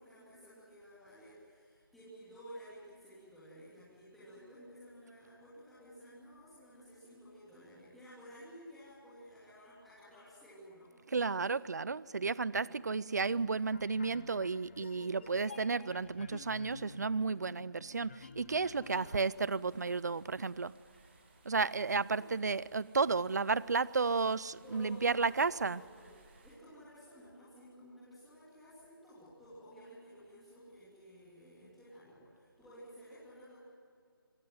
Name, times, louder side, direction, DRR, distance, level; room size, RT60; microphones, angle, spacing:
voice 1, 0.0-11.5 12.5-12.8 18.7-19.3 22.0-22.2 24.6-26.1 26.4-33.6, equal, ahead, 3.0 m, -54 dB
voice 2, 11.1-20.8 21.4-25.8, right 4 dB, 45° right, 0.5 m, -33 dB
sound 1, 13.2-19.2, left 4 dB, 30° left, 1.1 m, -52 dB
sound 2, 18.8-26.6, right 3 dB, 30° right, 3.0 m, -64 dB
25.0 x 18.0 x 9.3 m
figure-of-eight pair, 170°, 12 cm